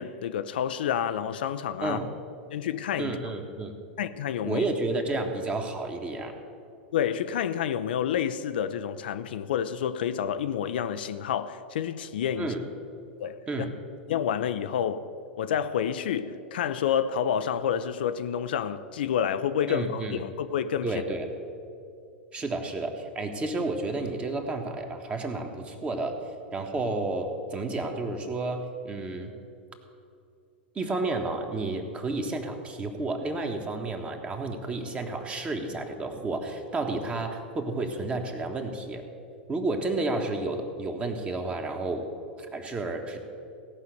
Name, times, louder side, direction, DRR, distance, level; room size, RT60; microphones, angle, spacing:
voice 1, 0.0-2.0 2.5-3.2 4.0-4.6 6.9-12.5 13.2-13.5 14.1-20.9, left 8 dB, 65° left, 0.5 m, -29 dB
voice 2, 3.0-3.7 4.4-6.4 12.4-12.6 13.5-13.7 19.7-20.2 20.8-21.3 22.3-26.2 26.5-29.3 30.7-39.0 39.5-42.1 42.5-43.2, right 2 dB, 20° right, 1.5 m, -31 dB
17.0 x 5.8 x 7.9 m
figure-of-eight pair, 95°, 6 cm